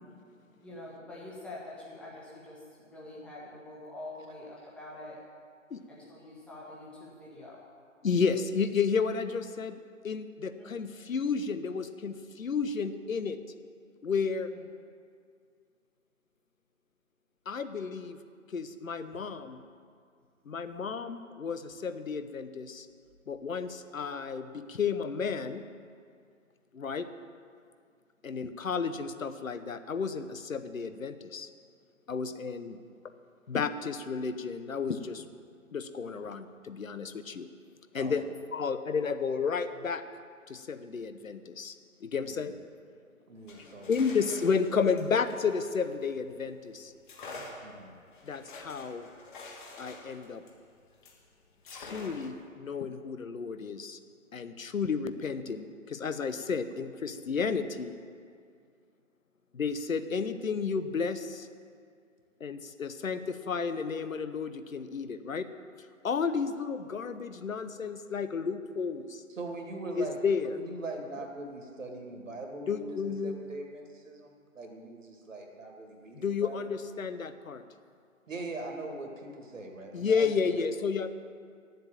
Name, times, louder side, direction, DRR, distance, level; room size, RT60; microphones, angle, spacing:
voice 1, 0.6-5.2 5.9-7.6 10.5-10.7 14.5-14.6, left 2 dB, 5° left, -6 dB, 1.4 m, -45 dB
voice 2, 8.0-13.4 14.0-14.5 17.5-18.2 18.5-19.6 20.5-22.9 23.3-25.6 26.7-27.1 28.2-31.5 32.1-32.8 33.5-35.2 35.7-37.5 37.9-40.0 40.5-41.7 42.0-42.5 43.6-46.9 48.2-49.1 49.8-50.4 51.7-54.0 54.3-57.9 59.5-61.5 62.4-65.5 66.0-69.2 70.0-70.5 72.7-73.4 76.1-77.6 79.9-81.1, left 5 dB, 75° left, 11 dB, 0.9 m, -32 dB
voice 3, 43.3-43.9 47.6-48.0 69.4-70.2 70.5-76.6 78.3-80.5, right 2 dB, 65° right, 2 dB, 2.2 m, -41 dB
sound 1, 43.4-46.4 47.0-51.2 51.6-52.4, left 3 dB, 35° left, 1.7 m, -47 dB
9.4 x 7.7 x 8.8 m, 2.2 s
figure-of-eight pair, 140°, 41 cm